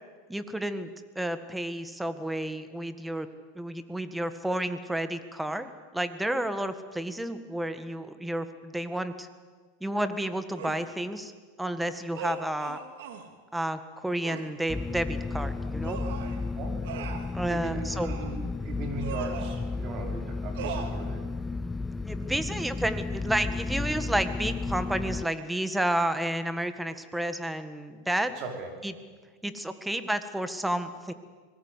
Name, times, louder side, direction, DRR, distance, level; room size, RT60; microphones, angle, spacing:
voice 1, 0.3-3.3 3.5-9.3 9.8-11.3 11.6-12.8 13.5-16.0 17.3-18.1 22.0-28.3 28.8-28.9 29.4-31.1, right 1 dB, 5° right, 11 dB, 1.6 m, -31 dB
sound 1, 10.6-10.9 12.1-13.3 14.2-14.5 15.8-16.4 16.8-17.3 17.9-18.4 19.0-19.6 20.6-20.9, right 6 dB, 75° right, 2.9 m, -38 dB
sound 2, 14.7-25.3, left 3 dB, 10° left, 0.6 m, -33 dB
voice 2, 16.6-16.9 17.5-21.2 28.4-28.7, right 3 dB, 45° right, 3 dB, 5.3 m, -39 dB
25.0 x 20.0 x 8.2 m, 1.5 s
supercardioid pair, 125°, 0 cm